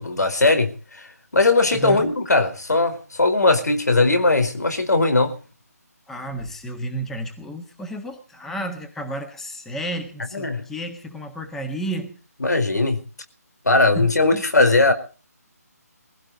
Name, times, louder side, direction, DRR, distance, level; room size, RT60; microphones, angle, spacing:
voice 1, 0.0-5.3 10.3-10.6 12.4-13.0 13.6-14.9, left 3 dB, 80° left, 4.5 m, -19 dB
voice 2, 1.7-2.1 6.1-12.2 13.9-14.1 14.3-14.4, right 1 dB, 5° left, 1.5 m, -32 dB
20.5 x 16.0 x 4.1 m
figure-of-eight pair, 160°, 9 cm